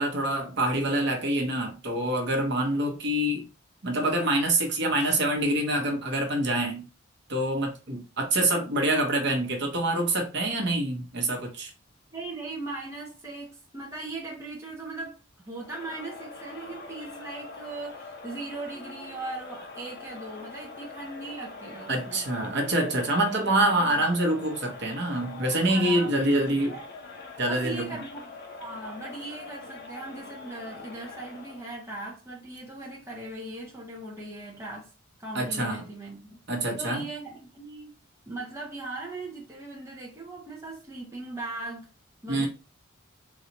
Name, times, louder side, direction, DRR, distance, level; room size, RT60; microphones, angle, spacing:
voice 1, 0.0-3.4 3.8-6.9 7.3-11.7 21.9-26.8 27.4-27.9 35.3-35.8 36.5-37.0 42.3-42.5, right 1 dB, 50° right, 0.9 m, -26 dB
voice 2, 12.1-15.2 15.4-22.2 23.2-23.5 23.8-24.0 25.4-26.8 27.5-34.9 35.2-36.4 36.7-38.0 38.3-41.9 42.2-42.5, right 2 dB, 15° right, 0.6 m, -39 dB
Crowd, 15.5-31.8, left 3 dB, 50° left, 0.7 m, -44 dB
4.0 x 2.3 x 2.9 m
head